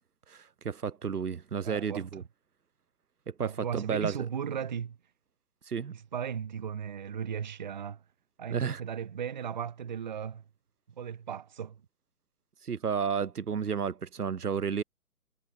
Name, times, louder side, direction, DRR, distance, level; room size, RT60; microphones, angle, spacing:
voice 1, 0.3-2.2 3.3-4.2 5.7-5.9 8.5-8.8 12.6-14.8, right 6 dB, 80° right, 0.8 m, -32 dB
voice 2, 1.6-2.1 3.4-5.0 5.9-8.0 8.4-10.4 11.0-11.8, right 8 dB, 30° right, 0.7 m, -36 dB
figure-of-eight pair, 135°, 46 cm